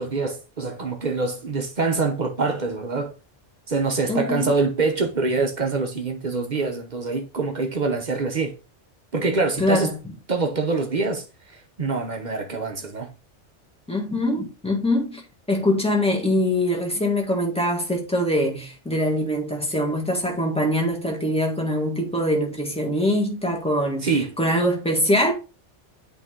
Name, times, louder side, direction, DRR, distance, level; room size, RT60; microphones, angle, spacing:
voice 1, 0.0-3.1 3.7-8.6 9.1-9.9 10.3-13.1 24.0-24.4, right 3 dB, 40° right, 0.9 m, -25 dB
voice 2, 4.1-4.5 9.6-10.0 13.9-15.2 15.5-25.3, left 1 dB, 5° left, 1.5 m, -23 dB
8.3 x 3.2 x 3.6 m
omnidirectional pair, 1.2 m